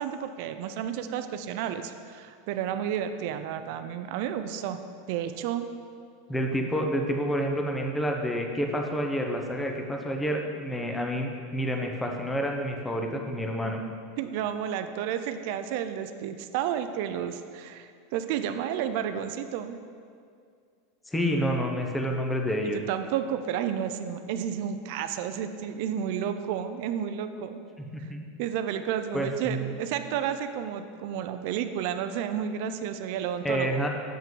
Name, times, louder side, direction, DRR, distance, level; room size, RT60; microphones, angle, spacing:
voice 1, 0.0-4.8 5.1-5.7 14.2-19.8 22.7-27.6 28.0-28.1 28.4-33.8, right 9 dB, 55° right, 9 dB, 0.3 m, -31 dB
voice 2, 6.3-13.8 21.1-22.8 27.8-28.2 29.1-29.7 33.4-33.9, equal, 5° left, 2 dB, 0.6 m, -29 dB
7.4 x 5.6 x 3.7 m, 2.2 s
supercardioid pair, 155°, 0 cm